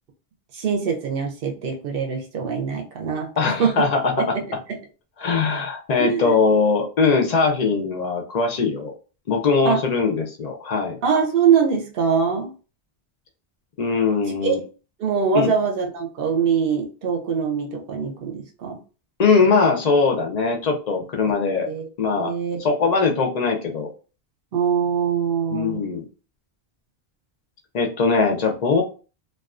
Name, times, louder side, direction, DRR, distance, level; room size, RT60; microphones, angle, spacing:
voice 1, 0.5-3.8 4.2-4.4 4.7-4.8 6.0-6.3 9.6-9.8 11.0-12.5 14.4-14.6 15.0-18.8 21.7-21.9 22.2-22.6 24.5-25.8, right 6 dB, 65° right, 2 dB, 0.7 m, -23 dB
voice 2, 3.4-4.4 5.2-8.9 9.3-11.0 13.8-14.6 15.3-15.5 19.2-21.7 22.0-22.3 22.6-23.9 25.5-26.1 27.7-28.8, left 4 dB, 55° left, 3 dB, 0.5 m, -21 dB
2.3 x 2.2 x 2.4 m, 0.35 s
omnidirectional pair, 1.1 m